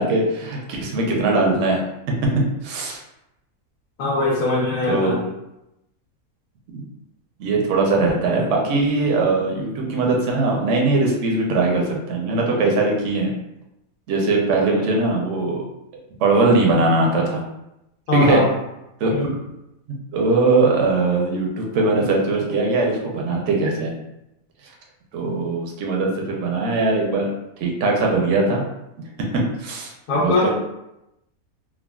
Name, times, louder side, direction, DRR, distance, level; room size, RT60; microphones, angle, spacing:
voice 1, 0.0-1.8 2.6-3.0 4.8-5.3 6.7-6.8 7.4-13.3 14.1-15.7 16.2-17.4 18.1-18.4 19.0-19.1 20.1-23.9 25.1-27.3 27.6-28.6 29.3-30.5, right 3 dB, 60° right, -1 dB, 0.9 m, -20 dB
voice 2, 4.0-5.2 18.1-18.5 19.1-19.3 30.1-30.5, left 2 dB, 80° left, -6 dB, 1.2 m, -21 dB
3.6 x 2.0 x 2.3 m, 0.88 s
omnidirectional pair, 1.6 m